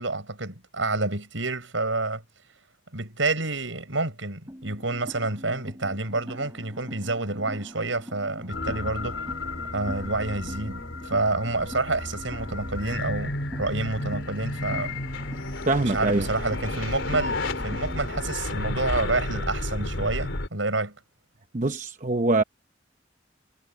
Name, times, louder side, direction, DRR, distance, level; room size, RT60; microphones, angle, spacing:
voice 1, 0.0-2.2 2.9-9.2 9.7-15.0 15.8-20.9, right 2 dB, 80° right, 7.2 m, -28 dB
sound 1, 4.5-18.3, equal, 15° right, 4.4 m, -42 dB
sound 2, 8.5-20.5, left 2 dB, 85° left, 3.2 m, -32 dB
voice 2, 15.7-16.3 21.5-22.4, right 2 dB, 40° right, 0.9 m, -23 dB
head